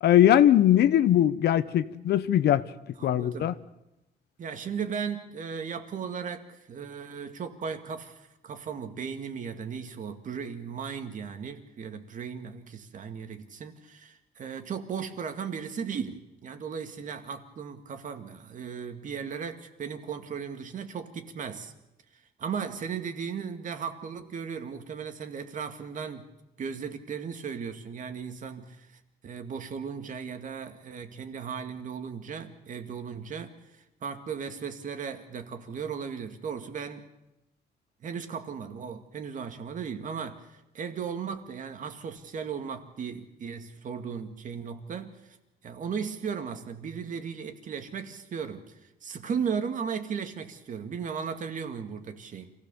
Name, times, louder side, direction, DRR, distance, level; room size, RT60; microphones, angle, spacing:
voice 1, 0.0-2.6 3.0-3.5, left 11 dB, 80° left, 1.0 m, -20 dB
voice 2, 3.0-3.6 4.4-21.7 22.1-26.2 26.6-37.1 38.0-45.4 45.6-52.5, right 6 dB, 50° right, 2.0 m, -36 dB
26.5 x 16.5 x 7.0 m
cardioid pair, 145°, 17 cm